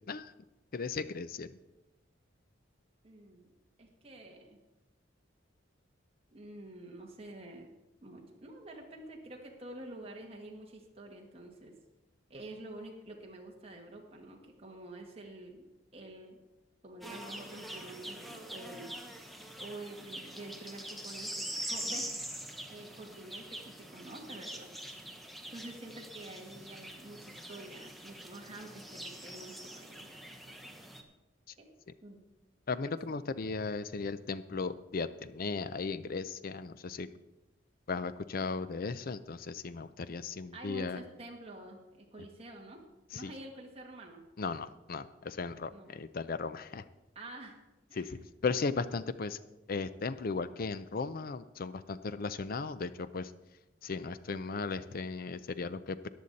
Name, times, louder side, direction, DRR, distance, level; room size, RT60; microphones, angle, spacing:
voice 1, 0.7-1.6 32.7-37.1 37.9-41.0 43.1-43.3 44.4-46.8 48.0-49.4 49.7-53.3 53.8-56.1, left 4 dB, 50° left, 14 dB, 0.5 m, -36 dB
voice 2, 3.0-3.5 3.8-4.6 6.3-7.7 8.0-11.7 12.3-15.7 15.9-16.4 16.8-18.9 19.6-22.1 22.7-24.9 25.5-30.7 31.6-31.7 32.0-32.2 40.5-42.8 43.1-44.2 45.7-45.9 47.1-47.6 47.9-48.2, right 1 dB, 30° right, 0 dB, 1.8 m, -48 dB
sound 1, 17.0-31.0, right 1 dB, ahead, 1.0 m, -44 dB
14.0 x 10.0 x 4.1 m, 1.0 s
head